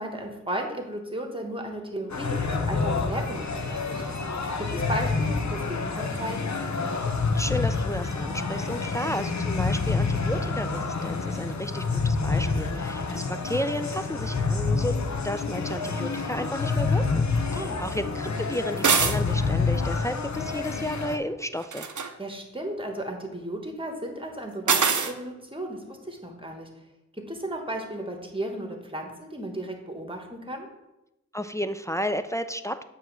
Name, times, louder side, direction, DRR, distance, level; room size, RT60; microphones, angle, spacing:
voice 1, 0.0-4.0 4.6-6.5 17.3-17.9 22.2-26.7 27.2-30.7, right 1 dB, 20° right, 3 dB, 1.3 m, -35 dB
sound 1, 2.1-21.2, left 4 dB, 70° left, 0.7 m, -28 dB
voice 2, 7.3-15.0 15.2-21.9 31.3-32.8, equal, 10° left, 9 dB, 0.3 m, -32 dB
sound 2, 18.8-19.2 21.6-22.1 24.7-25.1, right 5 dB, 90° right, 0.6 m, -23 dB
7.3 x 3.1 x 6.0 m, 0.94 s
wide cardioid pair, 40°, 29 cm